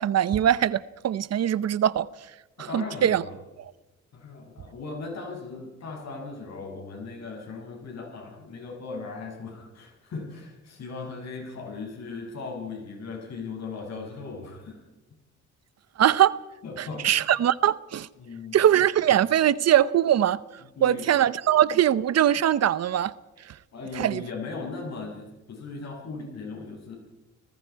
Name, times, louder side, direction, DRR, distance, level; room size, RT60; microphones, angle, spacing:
voice 1, 0.0-2.1 2.7-3.2 16.0-16.4 16.8-18.1 18.5-20.4 20.8-23.1 23.4-23.6 24.0-24.2, right 11 dB, 60° right, 0.8 m, -22 dB
voice 2, 2.6-3.3 4.1-14.8 15.1-15.2 16.6-17.1 18.2-18.6 20.8-21.1 23.7-27.0, left 4 dB, 60° left, 7.3 m, -38 dB
30.0 x 19.5 x 4.7 m
cardioid pair, 90°, 30 cm